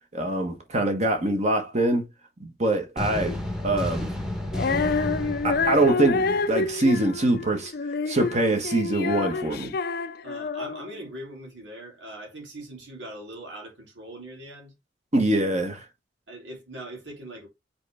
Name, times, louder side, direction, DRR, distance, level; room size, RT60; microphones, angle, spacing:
voice 1, 0.1-2.1 2.4-3.4 3.6-4.1 5.4-7.7 8.1-9.7 15.1-15.8, right 2 dB, 40° right, 1.4 m, -24 dB
sound 1, 3.0-6.9, left 1 dB, 5° right, 1.1 m, -32 dB
Female singing, 4.5-10.9, left 4 dB, 55° left, 0.5 m, -28 dB
voice 2, 10.2-14.7 16.3-17.5, right 1 dB, 90° right, 3.1 m, -41 dB
6.2 x 4.3 x 3.5 m
head